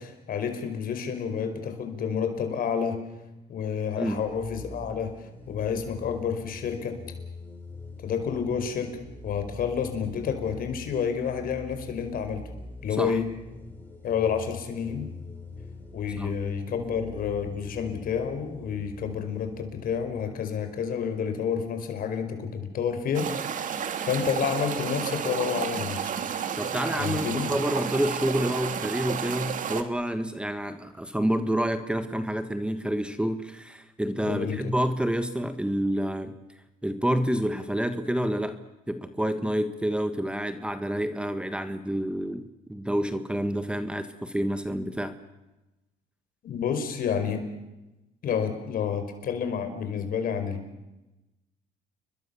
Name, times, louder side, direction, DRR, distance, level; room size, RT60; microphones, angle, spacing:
voice 1, 0.0-3.0 3.5-7.0 8.0-12.4 12.8-13.3 14.0-15.1 15.9-23.3 23.6-26.1 27.0-27.5 34.2-34.7 46.4-47.4 48.2-50.6, left 7 dB, 60° left, 8 dB, 5.0 m, -29 dB
sound 1, 4.1-21.6, left 2 dB, 10° left, 5.7 m, -45 dB
sound 2, 23.1-29.8, right 8 dB, 50° right, 2.3 m, -31 dB
voice 2, 26.6-36.3 36.8-38.6 38.9-42.4 42.7-45.1, equal, 5° right, 10 dB, 1.6 m, -28 dB
29.5 x 23.0 x 7.1 m, 1.0 s
cardioid pair, 110°, 17 cm